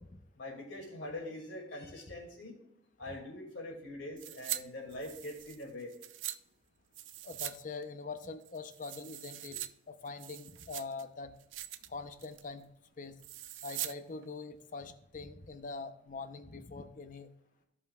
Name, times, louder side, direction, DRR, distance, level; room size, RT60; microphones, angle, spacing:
voice 1, 0.4-2.6 3.0-5.9, left 1 dB, 85° left, 0 dB, 2.3 m, -43 dB
sound 1, 4.2-4.6 4.9-6.4 6.9-7.6 7.8-7.9 8.4-9.7 10.1-11.0 11.4-11.9 12.2-12.5 13.2-13.9 14.2-14.3, right 13 dB, 80° right, 0.4 m, -42 dB
voice 2, 7.2-9.6 9.9-11.3 11.9-12.7 13.0-13.2 13.6-17.3, left 4 dB, 45° left, 9 dB, 0.7 m, -43 dB
15.5 x 5.6 x 2.3 m, 0.78 s
head